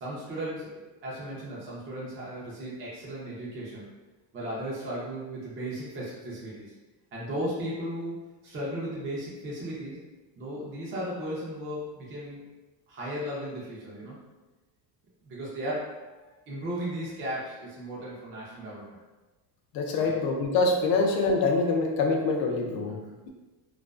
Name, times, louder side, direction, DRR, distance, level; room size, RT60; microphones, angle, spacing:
voice 1, 0.0-3.9 4.3-6.7 7.1-10.0 10.4-12.4 12.9-14.2 15.2-16.2 16.5-18.8 20.0-20.2 20.9-21.0 22.9-23.2, right 1 dB, 25° right, -6 dB, 0.5 m, -36 dB
voice 2, 19.7-23.0, left 3 dB, 50° left, 2 dB, 0.5 m, -25 dB
2.4 x 2.2 x 2.3 m, 1.2 s
cardioid pair, 140°, 50 cm